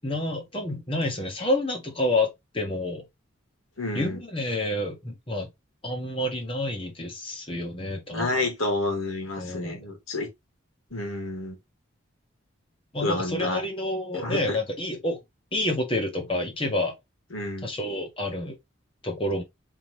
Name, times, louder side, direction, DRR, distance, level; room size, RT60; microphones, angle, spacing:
voice 1, 0.0-3.1 3.9-5.5 5.8-8.5 9.4-9.9 12.9-15.2 15.5-16.9 17.6-18.5 19.0-19.4, left 1 dB, 25° left, 1.4 m, -29 dB
voice 2, 3.8-4.2 8.1-10.3 10.9-11.6 13.0-13.6 14.1-14.6 17.3-17.7, left 2 dB, 90° left, 2.1 m, -29 dB
4.3 x 3.7 x 3.2 m
head